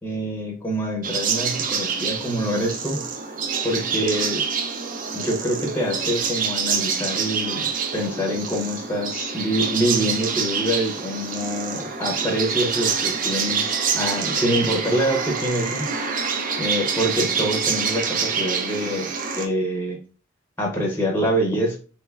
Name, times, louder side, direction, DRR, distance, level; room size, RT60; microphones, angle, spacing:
voice 1, 0.0-3.1 3.6-4.4 5.1-15.9 16.6-19.1 19.4-20.0 20.6-21.8, equal, 10° left, 0 dB, 0.7 m, -25 dB
sound 1, 1.0-19.5, right 6 dB, 45° right, 0.5 m, -26 dB
3.3 x 3.1 x 2.3 m, 0.37 s
head